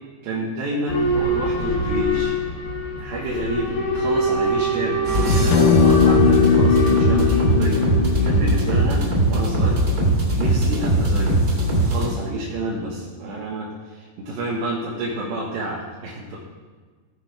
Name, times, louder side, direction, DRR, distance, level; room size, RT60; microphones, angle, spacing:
voice 1, 0.2-2.3 3.0-11.4 11.8-16.4, right 1 dB, 75° right, -6 dB, 3.7 m, -29 dB
Boat Water vehicle / Alarm, 0.9-11.5, right 1 dB, 35° left, 1.7 m, -26 dB
sound 1, 5.0-12.1, right 1 dB, 25° right, 2.2 m, -20 dB
sound 2, 5.5-10.1, left 7 dB, 85° left, 2.1 m, -20 dB
17.0 x 6.7 x 5.1 m, 1.5 s
omnidirectional pair, 5.1 m